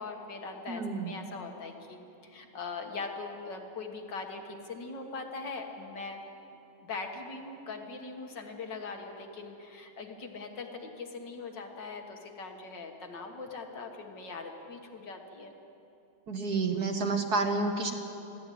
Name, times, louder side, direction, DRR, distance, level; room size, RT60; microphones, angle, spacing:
voice 1, 0.0-6.2 6.8-15.5, left 4 dB, 55° left, 3 dB, 2.2 m, -41 dB
voice 2, 0.7-1.1 16.3-17.9, right 3 dB, 50° right, 4 dB, 1.6 m, -29 dB
21.0 x 14.5 x 9.3 m, 2.9 s
omnidirectional pair, 2.3 m